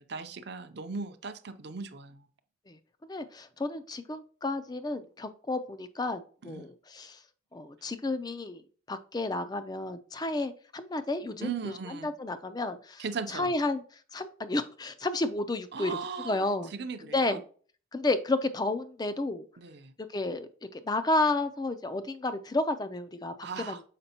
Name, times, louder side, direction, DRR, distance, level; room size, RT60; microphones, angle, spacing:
voice 1, 0.0-2.3 6.4-6.7 11.4-12.1 13.0-13.5 15.7-17.4 19.6-19.9 23.4-23.8, right 5 dB, 55° right, 8 dB, 0.5 m, -38 dB
voice 2, 3.1-7.2 7.5-8.6 8.9-11.7 12.0-13.0 13.3-13.8 14.1-16.0 16.2-16.7 17.1-17.4 17.9-19.5 20.1-23.8, left 2 dB, 20° left, 12 dB, 0.4 m, -31 dB
6.7 x 5.0 x 2.8 m, 0.43 s
head